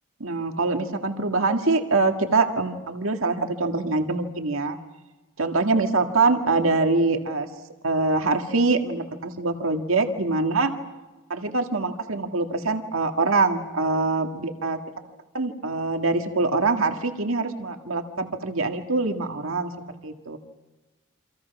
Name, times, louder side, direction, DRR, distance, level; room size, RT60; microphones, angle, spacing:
voice 1, 0.2-4.8 5.4-7.5 7.8-10.7 11.3-14.8 15.3-19.7 20.0-20.4, right 3 dB, 80° right, 5 dB, 1.9 m, -24 dB
29.0 x 26.0 x 6.0 m, 1.2 s
head